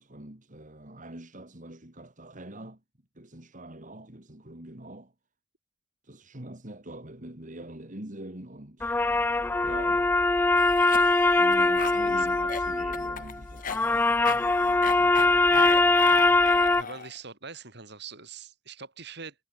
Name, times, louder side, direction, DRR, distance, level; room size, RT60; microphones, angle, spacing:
voice 1, 0.0-2.8 3.1-5.1 6.0-9.3 9.6-10.1 11.4-16.1, right 1 dB, 45° right, 3.0 m, -44 dB
sound 1, 8.8-16.8, left 2 dB, 10° left, 0.3 m, -22 dB
Cough, 10.6-17.2, left 6 dB, 45° left, 1.1 m, -37 dB
voice 2, 16.5-19.3, right 5 dB, 60° right, 6.2 m, -43 dB
head